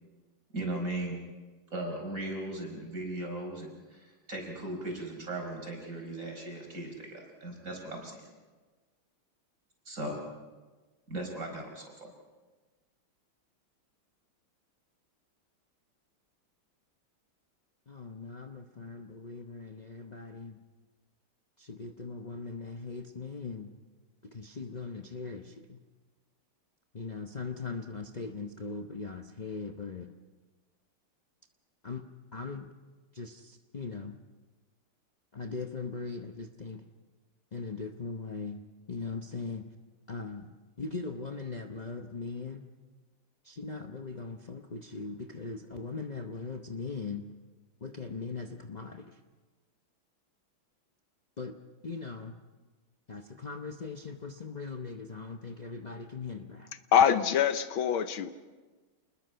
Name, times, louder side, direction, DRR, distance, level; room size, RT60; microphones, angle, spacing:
voice 1, 0.5-1.2 1.7-8.3 9.9-10.2 11.1-12.1, right 1 dB, 40° right, 1 dB, 5.3 m, -37 dB
voice 2, 17.9-20.6 21.6-23.7 24.2-25.8 26.9-30.1 31.8-32.0 32.3-32.7 33.1-34.2 35.3-36.8 37.5-39.7 40.1-40.5 40.8-42.7 43.4-47.3 47.8-49.2 51.4-51.6 51.8-52.4 53.1-56.7, left 4 dB, 45° left, 4 dB, 0.5 m, -40 dB
voice 3, 56.9-58.3, left 8 dB, 75° left, 11 dB, 1.7 m, -24 dB
28.5 x 21.0 x 5.7 m, 1.3 s
omnidirectional pair, 2.3 m